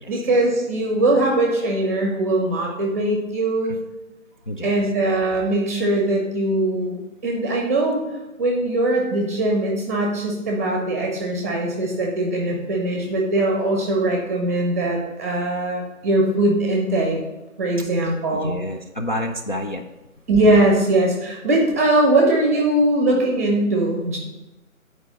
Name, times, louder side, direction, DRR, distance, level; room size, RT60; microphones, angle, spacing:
voice 1, 0.1-3.8 4.6-8.0 8.4-17.2 17.6-18.5 20.3-24.2, right 1 dB, 10° right, 0 dB, 0.8 m, -21 dB
voice 2, 18.3-19.8, left 1 dB, 40° left, 0 dB, 0.4 m, -29 dB
9.9 x 4.7 x 5.4 m, 1.1 s
figure-of-eight pair, 150°, 42 cm